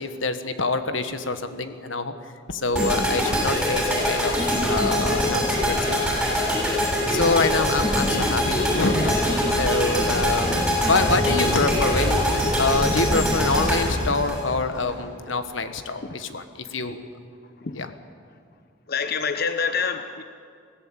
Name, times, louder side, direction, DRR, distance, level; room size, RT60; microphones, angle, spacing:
voice 1, 0.0-2.1 2.5-4.4 4.6-6.5 7.1-9.1 9.5-12.2 12.5-17.0 17.7-17.9, left 3 dB, 80° left, 9 dB, 1.4 m, -26 dB
sound 1, 2.7-14.9, equal, 5° right, 7.1 m, -23 dB
sound 2, 8.2-14.1, equal, 30° left, 5.6 m, -31 dB
voice 2, 18.9-20.2, left 6 dB, 55° left, 8 dB, 0.8 m, -26 dB
22.5 x 16.5 x 8.9 m, 2.3 s
head